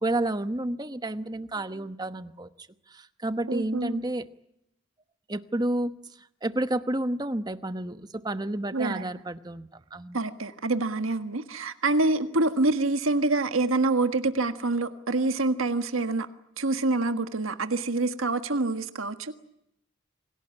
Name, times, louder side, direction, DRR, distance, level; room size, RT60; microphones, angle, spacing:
voice 1, 0.0-2.5 2.9-4.3 5.3-10.2, right 1 dB, 20° right, 11 dB, 1.0 m, -30 dB
voice 2, 3.5-4.0 8.7-9.2 10.1-16.3 16.6-19.3, right 2 dB, 85° right, 9 dB, 1.6 m, -26 dB
26.5 x 18.0 x 9.8 m, 0.81 s
head